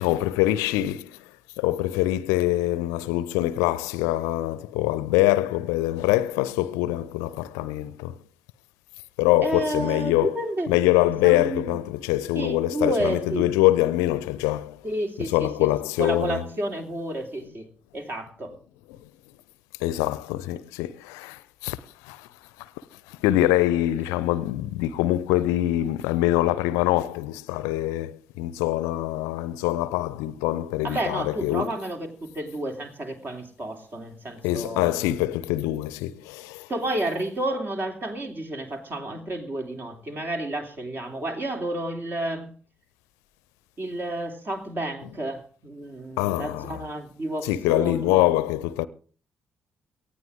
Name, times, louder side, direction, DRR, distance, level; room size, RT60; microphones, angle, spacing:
voice 1, 0.0-8.2 9.2-14.8 15.2-16.4 19.8-22.3 22.6-31.7 34.4-36.7 46.2-46.8 47.4-48.9, left 15 dB, 65° left, 0.6 m, -24 dB
voice 2, 9.4-11.7 12.3-13.5 14.8-15.5 16.0-18.5 30.8-34.9 36.7-42.5 43.8-48.3, right 1 dB, 40° right, 3.2 m, -31 dB
18.5 x 14.0 x 3.7 m
figure-of-eight pair, 40°, 6 cm